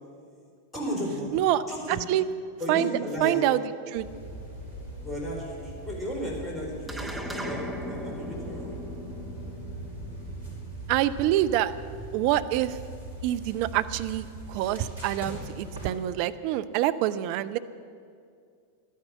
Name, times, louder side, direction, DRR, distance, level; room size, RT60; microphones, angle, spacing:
voice 1, 0.7-1.4 1.7-2.0 2.6-3.4 5.0-8.8, equal, 10° left, -2 dB, 4.2 m, -34 dB
voice 2, 1.9-2.2 2.7-2.9 3.2-3.6 3.9-4.1 10.9-11.7 12.1-12.8 13.2-17.6, right 13 dB, 45° right, 12 dB, 0.5 m, -26 dB
sound 1, 3.9-15.9, right 2 dB, 80° right, 4.0 m, -41 dB
sound 2, 6.9-11.5, left 1 dB, 5° right, 1.2 m, -38 dB
12.0 x 10.0 x 8.7 m, 2.3 s
figure-of-eight pair, 90°, 0 cm